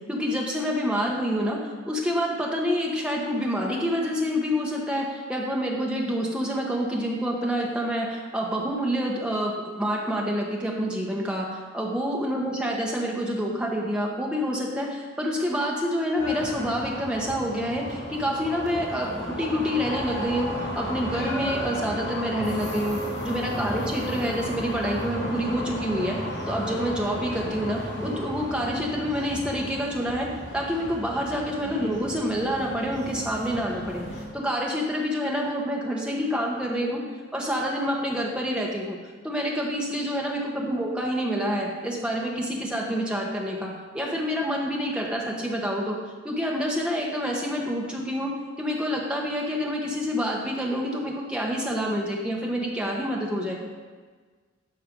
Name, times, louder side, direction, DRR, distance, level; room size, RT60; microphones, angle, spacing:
voice 1, 0.1-1.6 1.9-26.2 26.5-30.3 30.5-34.0 34.3-37.0 37.3-39.0 39.2-46.0 46.2-48.3 48.6-53.5, equal, 5° right, -3 dB, 1.3 m, -27 dB
sound 1, 16.2-34.2, left 1 dB, 60° left, 2.8 m, -34 dB
12.0 x 4.6 x 5.4 m, 1.5 s
head